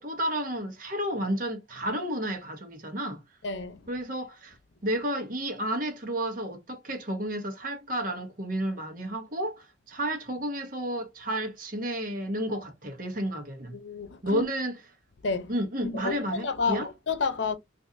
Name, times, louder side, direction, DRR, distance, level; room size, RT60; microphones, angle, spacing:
voice 1, 0.0-3.2 3.9-4.6 4.8-13.7 14.2-14.8 15.5-16.9, right 1 dB, 45° right, 1.0 m, -31 dB
voice 2, 3.4-3.8 13.7-14.5 15.2-15.5 15.8-17.6, left 4 dB, 75° left, 0.7 m, -30 dB
3.9 x 2.6 x 2.6 m
head